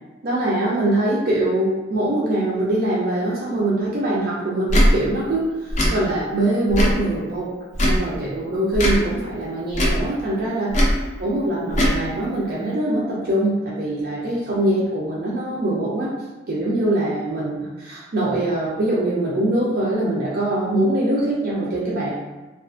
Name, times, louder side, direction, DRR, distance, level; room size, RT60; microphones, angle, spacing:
voice 1, 0.2-7.5 7.8-10.7 11.2-16.1 16.5-22.1, right 1 dB, 45° right, -6 dB, 0.4 m, -23 dB
Tick / Tick-tock, 4.7-4.9 5.7-5.9 6.7-7.0 7.7-8.0 8.7-9.0 9.7-10.0 10.7-11.0 11.7-12.0, equal, 35° left, 0.4 m, -18 dB
2.3 x 2.3 x 2.4 m, 1.2 s
head